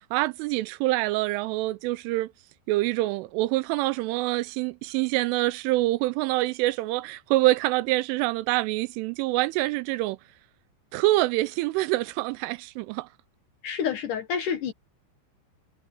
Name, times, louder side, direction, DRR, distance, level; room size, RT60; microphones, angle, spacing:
voice 1, 0.1-2.3 2.7-10.2 10.9-13.1, right 19 dB, 85° right, 3.0 m, -26 dB
voice 2, 13.6-14.7, left 7 dB, 85° left, 1.8 m, -28 dB
omnidirectional pair, 5.8 m